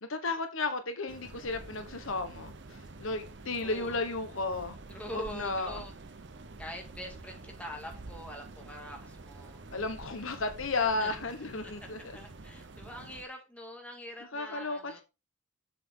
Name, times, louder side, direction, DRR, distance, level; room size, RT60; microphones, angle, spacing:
voice 1, 0.0-4.7 5.1-5.8 9.7-12.2 14.3-15.0, left 3 dB, 70° left, 1.2 m, -33 dB
sound 1, 1.1-13.2, right 3 dB, 55° right, 0.8 m, -48 dB
voice 2, 3.6-4.0 4.9-5.9 6.6-9.6 11.0-11.1 11.6-11.7 12.1-15.0, equal, 5° left, 1.8 m, -44 dB
7.6 x 6.8 x 3.7 m
head